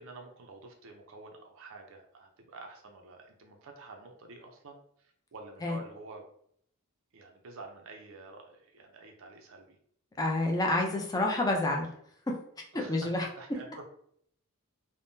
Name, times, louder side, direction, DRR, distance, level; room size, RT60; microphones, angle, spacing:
voice 1, 0.0-6.2 7.1-9.8 12.7-13.9, right 3 dB, 65° right, 3 dB, 0.5 m, -49 dB
voice 2, 10.2-11.9 12.3-12.4 12.7-13.3, left 2 dB, 15° left, 0 dB, 0.5 m, -28 dB
3.5 x 2.1 x 2.6 m, 0.67 s
head